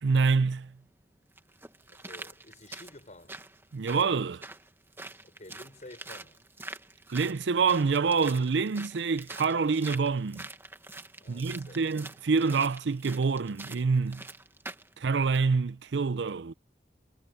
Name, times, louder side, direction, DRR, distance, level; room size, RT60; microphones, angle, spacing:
voice 1, 0.0-0.7 3.7-4.4 7.1-10.5 11.3-14.2 15.0-16.5, right 4 dB, 85° right, 0.5 m, -26 dB
sound 1, 0.5-0.6 1.4-14.9 15.3-15.4, right 2 dB, 15° right, 1.5 m, -45 dB
voice 2, 1.9-3.4 5.2-6.4 11.2-11.8, left 1 dB, 45° left, 6.4 m, -50 dB
head